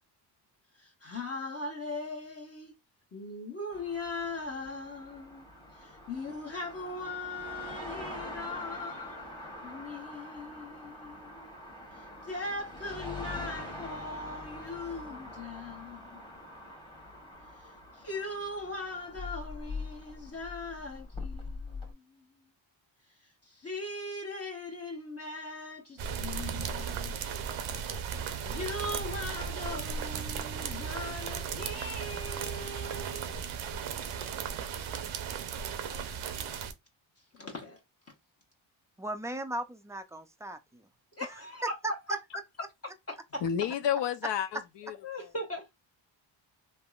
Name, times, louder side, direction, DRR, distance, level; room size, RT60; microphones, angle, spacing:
voice 1, 0.8-2.7 3.1-5.5 5.8-9.3 9.6-11.5 12.2-16.2 17.9-22.3 23.4-27.1 28.4-33.9 37.3-37.8 41.2-41.7 43.1-43.4 45.0-45.7, left 2 dB, 30° left, 0.8 m, -40 dB
sound 1, 3.7-21.9, left 2 dB, 10° left, 1.1 m, -44 dB
sound 2, 26.0-36.7, right 7 dB, 75° right, 0.7 m, -36 dB
voice 2, 39.0-40.9 41.3-42.2, right 1 dB, 5° right, 0.3 m, -37 dB
voice 3, 43.4-45.3, left 9 dB, 60° left, 0.6 m, -31 dB
3.5 x 2.0 x 2.3 m
cardioid pair, 80°, 48 cm